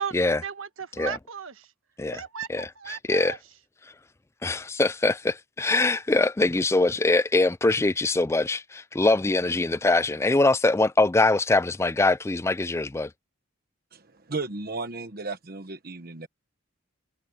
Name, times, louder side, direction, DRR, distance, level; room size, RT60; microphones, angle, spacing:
voice 1, 0.4-1.7 2.1-3.4, right 7 dB, 80° right, 1.4 m, -35 dB
voice 2, 2.5-3.4 4.4-13.1, left 2 dB, 15° left, 0.3 m, -23 dB
voice 3, 13.9-16.3, right 3 dB, 45° right, 1.2 m, -35 dB
head